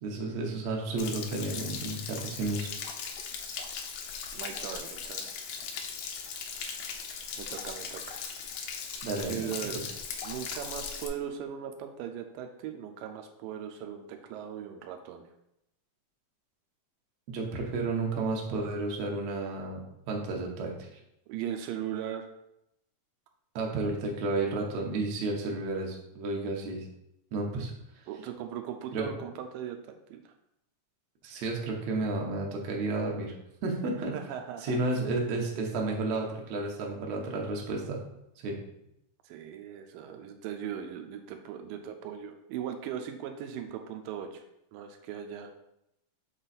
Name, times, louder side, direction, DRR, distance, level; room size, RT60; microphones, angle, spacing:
voice 1, 0.0-2.7 9.0-9.4 17.3-19.8 20.1-21.0 23.6-26.9 27.3-27.7 28.9-29.1 31.2-33.3 33.6-34.1 34.6-38.0 38.4-38.6, right 2 dB, 65° right, -1 dB, 1.9 m, -32 dB
Stream / Splash splatter / Trickle dribble, 1.0-11.1, left 6 dB, 85° left, 1.5 m, -38 dB
voice 2, 4.3-5.3 7.4-8.2 9.3-9.8 10.2-15.2 21.3-22.3 28.1-30.3 34.0-34.8 39.2-44.4 44.7-45.5, right 9 dB, 85° right, 5 dB, 2.3 m, -39 dB
6.9 x 3.9 x 4.1 m, 0.82 s
omnidirectional pair, 3.9 m